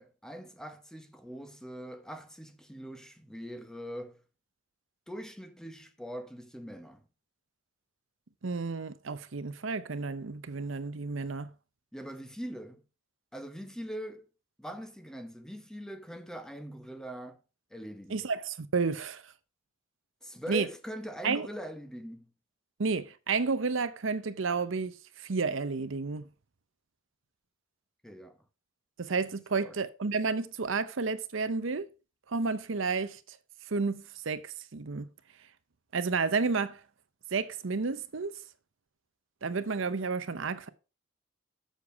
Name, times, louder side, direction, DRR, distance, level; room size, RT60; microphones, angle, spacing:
voice 1, 0.0-4.2 5.1-7.0 11.9-12.8 13.3-14.3 14.6-17.4 17.7-18.2 20.2-22.3 28.0-28.4 29.6-29.8, equal, 5° left, 0.8 m, -42 dB
voice 2, 8.4-11.5 18.1-19.3 20.5-20.7 21.2-21.5 22.8-26.2 29.0-31.9 32.3-33.4 33.7-35.1 35.9-36.8 37.3-38.4 39.4-40.7, right 4 dB, 70° right, 0.7 m, -31 dB
7.3 x 6.7 x 4.7 m
head